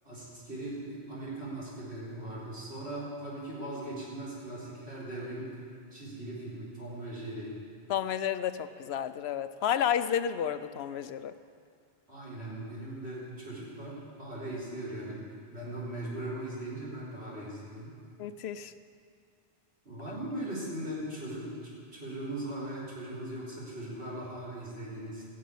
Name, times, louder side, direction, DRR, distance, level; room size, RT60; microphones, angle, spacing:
voice 1, 0.0-5.5 5.9-7.5 12.1-15.2 15.5-17.9 19.8-25.2, right 1 dB, 85° right, -7 dB, 4.5 m, -39 dB
voice 2, 7.9-11.3 18.2-18.7, left 9 dB, 80° left, 12 dB, 0.9 m, -31 dB
16.5 x 7.6 x 8.3 m, 2.3 s
omnidirectional pair, 1.1 m